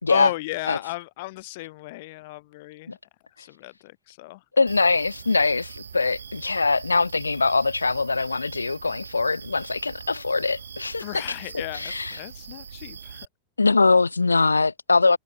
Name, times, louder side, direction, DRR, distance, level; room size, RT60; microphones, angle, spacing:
voice 1, 0.1-2.9 3.4-4.4 11.0-13.3, left 21 dB, 50° left, 2.4 m, -35 dB
voice 2, 4.6-12.2 13.6-15.2, left 3 dB, 80° left, 3.9 m, -22 dB
sound 1, 4.7-13.3, right 7 dB, 70° right, 6.7 m, -42 dB
figure-of-eight pair, 90°, 0 cm